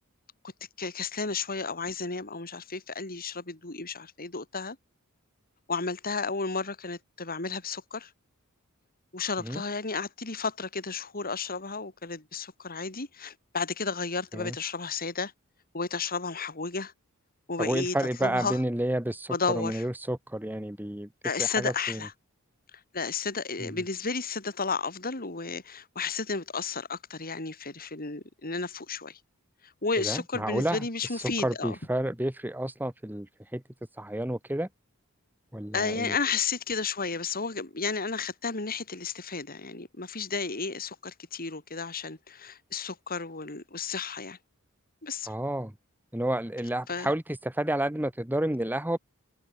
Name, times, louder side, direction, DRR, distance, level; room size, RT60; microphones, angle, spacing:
voice 1, 0.8-4.8 5.7-8.1 9.1-15.3 15.7-16.9 17.5-18.0 18.2-18.6 19.3-19.9 21.2-22.1 22.9-29.2 29.8-31.7 35.7-44.4 45.0-45.3 46.9-47.1, left 4 dB, 45° left, 4.8 m, -32 dB
voice 2, 17.6-21.1 21.4-22.0 23.6-23.7 30.0-30.8 31.1-33.3 33.5-33.6 34.0-34.7 35.5-36.1 45.3-45.7 46.1-49.0, right 1 dB, 10° right, 1.4 m, -30 dB
head